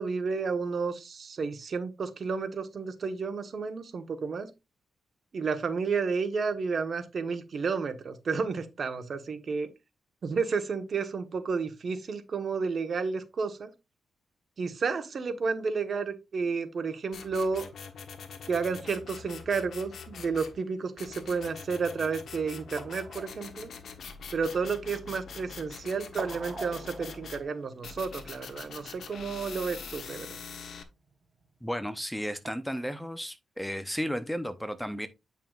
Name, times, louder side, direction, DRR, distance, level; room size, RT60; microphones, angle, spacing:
voice 1, 0.0-4.5 5.3-9.7 10.2-13.7 14.6-17.6 18.5-23.7 24.3-30.4, right 5 dB, 55° right, 1.2 m, -31 dB
sound 1, 17.1-20.6 21.0-27.4 27.8-30.8, left 5 dB, 75° left, 1.1 m, -44 dB
sound 2, 19.0-32.5, right 2 dB, 35° right, 2.9 m, -48 dB
voice 2, 31.6-35.1, equal, 5° left, 0.7 m, -33 dB
8.9 x 5.7 x 2.4 m
cardioid pair, 100°, 0 cm